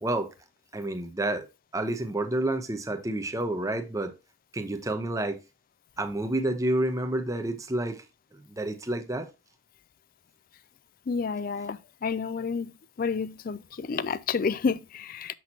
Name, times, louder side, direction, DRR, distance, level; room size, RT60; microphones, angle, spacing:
voice 1, 0.7-1.4 1.7-4.1 4.5-5.4 6.0-8.0 8.6-9.3, right 1 dB, 15° right, 0.8 m, -29 dB
voice 2, 11.1-12.7 13.0-15.3, left 5 dB, 45° left, 0.4 m, -30 dB
7.2 x 6.1 x 2.8 m
head